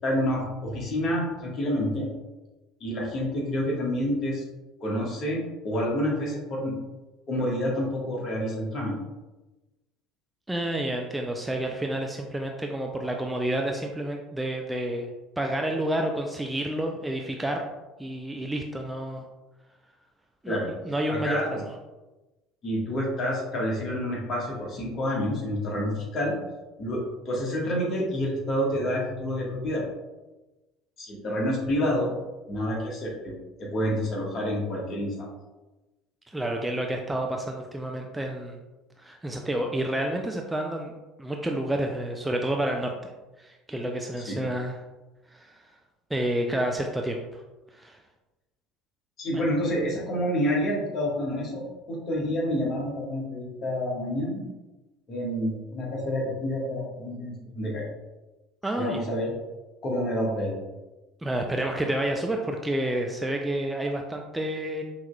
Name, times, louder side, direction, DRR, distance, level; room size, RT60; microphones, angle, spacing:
voice 1, 0.0-2.1 2.8-4.4 4.8-6.8 7.3-9.0 20.5-20.7 21.1-21.6 22.6-26.4 26.8-29.8 31.0-32.1 32.5-35.3 44.3-44.4 49.2-51.6 51.9-54.5 55.1-57.9 58.8-59.3 59.8-60.6, equal, 40° left, -3 dB, 1.4 m, -28 dB
voice 2, 10.5-15.1 15.4-17.6 18.0-19.3 20.4-21.6 36.3-38.6 39.0-40.9 41.2-43.1 43.4-44.8 45.3-45.7 46.1-47.4 47.7-48.0 49.3-49.4 58.6-59.0 61.2-64.8, right 1 dB, 10° right, 2 dB, 0.4 m, -29 dB
5.5 x 3.0 x 2.3 m, 1.1 s
figure-of-eight pair, 65°, 0 cm